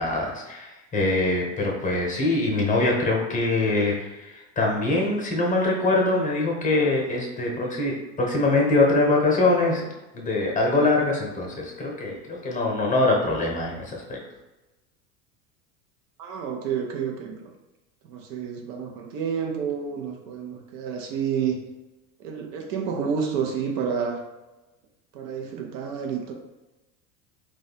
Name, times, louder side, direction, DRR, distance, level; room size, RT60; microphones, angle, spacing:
voice 1, 0.0-9.8 10.1-14.2, left 2 dB, 15° left, -1 dB, 0.9 m, -23 dB
voice 2, 16.2-17.5 18.1-21.6 22.2-24.2 25.1-26.3, right 7 dB, 60° right, 1 dB, 0.7 m, -29 dB
2.5 x 2.4 x 4.1 m, 1.1 s
hypercardioid pair, 90°, 44 cm